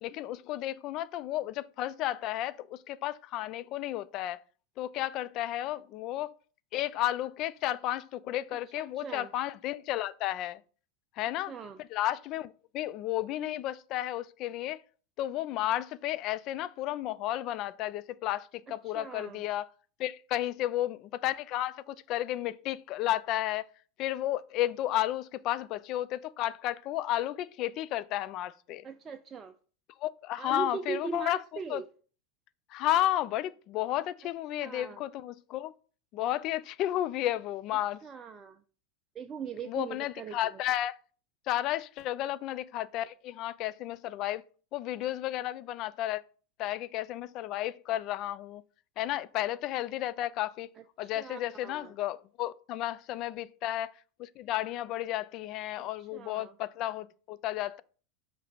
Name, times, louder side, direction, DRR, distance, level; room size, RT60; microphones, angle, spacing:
voice 1, 0.0-4.4 4.8-6.3 6.7-10.6 11.2-11.5 11.8-14.8 15.2-19.7 20.0-23.7 24.0-28.9 30.0-31.4 31.7-31.8 32.7-35.7 36.1-38.0 39.6-41.0 41.5-44.4 44.7-46.2 46.6-48.6 49.0-50.7 51.0-53.9 54.2-57.8, left 13 dB, 45° left, 0.3 m, -32 dB
voice 2, 8.8-9.3 11.5-11.8 18.7-19.4 28.8-29.5 30.4-31.9 34.6-35.0 38.0-38.6 39.1-40.6 51.0-51.9 55.8-56.5, right 6 dB, 25° right, 0.4 m, -40 dB
5.5 x 3.3 x 5.2 m
figure-of-eight pair, 85°, 0 cm